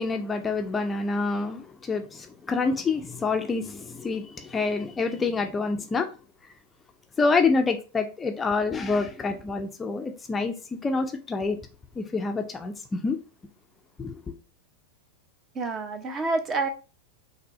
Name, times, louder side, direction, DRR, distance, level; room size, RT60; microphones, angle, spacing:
voice 1, 0.0-6.1 7.2-10.5 10.8-11.6 12.0-13.2 14.0-14.2, left 4 dB, 15° left, 0.5 m, -27 dB
voice 2, 15.5-16.7, right 3 dB, 25° right, 0.7 m, -28 dB
5.9 x 2.7 x 3.0 m
figure-of-eight pair, 90°, 0 cm